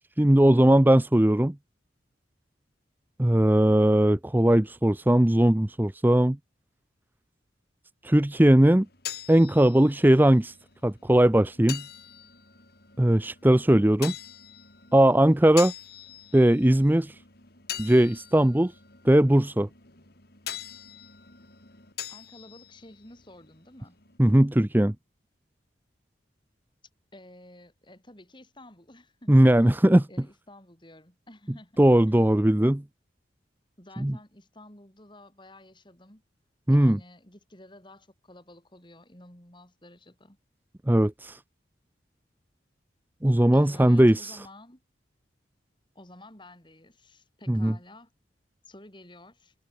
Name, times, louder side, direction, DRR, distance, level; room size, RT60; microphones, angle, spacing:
voice 1, 0.2-1.5 3.2-6.4 8.0-8.9 9.3-10.5 10.8-11.8 13.0-14.1 14.9-15.7 16.3-17.2 17.8-18.7 19.0-19.7 24.2-24.9 29.3-30.1 31.8-32.8 34.0-34.2 36.7-37.0 40.9-41.4 43.2-44.4 47.5-47.7, right 1 dB, 10° right, 0.5 m, -19 dB
sound 1, 8.6-24.2, left 10 dB, 55° left, 5.1 m, -43 dB
voice 2, 22.1-24.0 27.1-29.8 30.1-32.2 33.8-36.2 36.7-40.4 43.5-44.8 45.9-48.1 48.6-49.5, left 1 dB, 25° left, 5.7 m, -51 dB
head